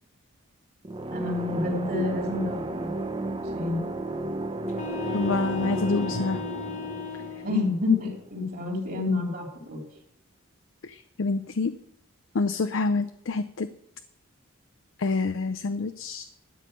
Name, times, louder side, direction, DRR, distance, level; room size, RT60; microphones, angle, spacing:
sound 1, 0.8-8.5, right 2 dB, 25° right, 0.6 m, -33 dB
voice 1, 1.1-2.9 3.5-3.8 7.4-9.8, left 3 dB, 45° right, 0 dB, 3.4 m, -28 dB
sound 2, 4.7-7.7, left 4 dB, 35° left, 1.1 m, -36 dB
voice 2, 5.1-6.4 10.8-11.7 12.3-13.7 15.0-16.2, left 3 dB, 65° left, 11 dB, 0.5 m, -27 dB
12.5 x 5.5 x 8.7 m, 0.71 s
head